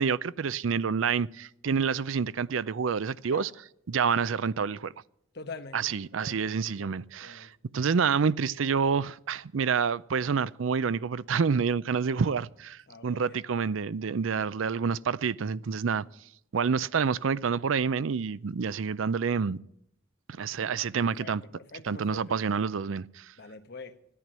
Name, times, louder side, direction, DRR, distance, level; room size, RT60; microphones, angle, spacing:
voice 1, 0.0-3.5 3.9-4.9 5.7-16.1 16.5-19.6 20.4-21.4 21.8-23.3, right 6 dB, 75° right, 0.5 m, -28 dB
voice 2, 5.3-5.9 6.2-6.5 6.8-7.5 12.9-13.4 21.2-22.2 23.4-24.2, left 3 dB, 55° left, 1.2 m, -45 dB
13.5 x 11.0 x 7.4 m
head